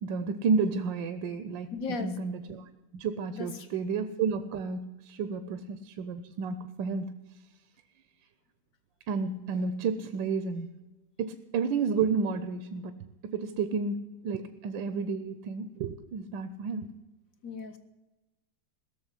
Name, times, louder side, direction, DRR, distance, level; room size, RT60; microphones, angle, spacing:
voice 1, 0.0-1.7 2.0-7.1 9.1-10.7 11.2-16.9, right 5 dB, 80° right, 10 dB, 1.4 m, -31 dB
voice 2, 1.7-2.1 3.3-3.7 17.4-17.8, left 4 dB, 50° left, 9 dB, 1.5 m, -36 dB
17.0 x 6.9 x 9.8 m, 1.1 s
omnidirectional pair, 2.0 m